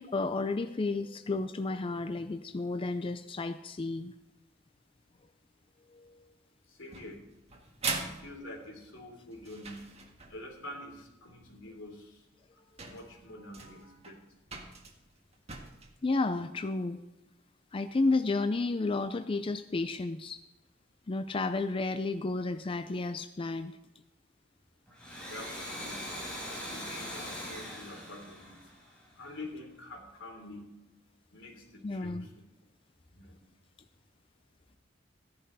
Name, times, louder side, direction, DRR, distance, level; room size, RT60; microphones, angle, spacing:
voice 1, 0.0-4.1 5.9-6.3 16.0-17.0 17.7-20.4 21.1-23.8 31.8-32.3, left 3 dB, 30° left, 10 dB, 0.4 m, -32 dB
voice 2, 6.7-7.3 8.0-9.9 10.3-12.3 12.8-14.2 25.3-26.1 26.7-28.6 29.2-30.7 31.3-32.3 33.1-33.4, left 1 dB, 80° left, 1 dB, 3.5 m, -46 dB
sound 1, 6.9-10.5 11.9-12.0 12.5-12.6 12.8-15.9, right 4 dB, 35° right, 1.7 m, -41 dB
Domestic sounds home sounds, 24.9-29.4, equal, 5° left, 4.8 m, -41 dB
15.5 x 11.0 x 4.0 m, 1.0 s
head